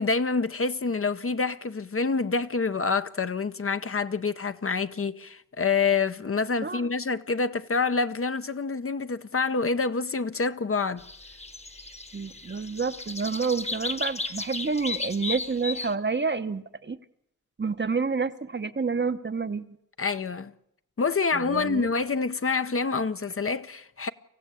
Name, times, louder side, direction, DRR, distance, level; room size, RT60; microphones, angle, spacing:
voice 1, 0.0-11.0 20.0-20.5 21.0-24.1, left 4 dB, 45° left, 0.8 m, -27 dB
sound 1, 11.0-15.9, left 3 dB, 20° left, 1.2 m, -35 dB
voice 2, 12.1-17.0 17.6-19.8 21.3-21.9, right 4 dB, 35° right, 0.9 m, -29 dB
24.5 x 15.5 x 8.4 m
wide cardioid pair, 110°, 33 cm